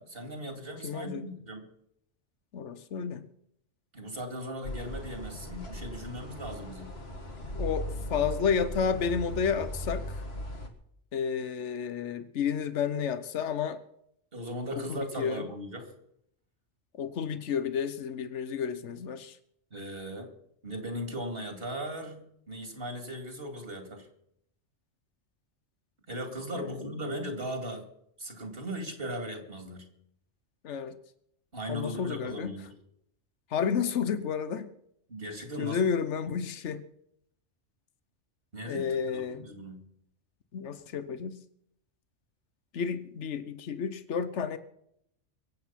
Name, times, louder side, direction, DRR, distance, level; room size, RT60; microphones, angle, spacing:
voice 1, 0.0-1.6 3.9-6.9 14.3-15.9 19.7-20.3 20.6-24.1 26.1-27.9 28.2-29.9 31.5-32.7 35.1-35.9 36.2-36.4 38.5-39.8, equal, 55° right, 5 dB, 2.8 m, -38 dB
voice 2, 0.8-1.3 2.5-3.2 7.5-10.2 11.1-13.8 14.7-15.4 17.0-19.4 26.6-26.9 30.6-31.0 31.7-32.5 33.5-34.7 35.6-36.8 38.7-39.5 40.5-41.4 42.7-44.6, left 7 dB, 85° left, 12 dB, 1.2 m, -31 dB
sound 1, 4.6-10.7, equal, 60° left, 2.0 m, -38 dB
23.5 x 8.2 x 5.8 m, 0.74 s
omnidirectional pair, 1.2 m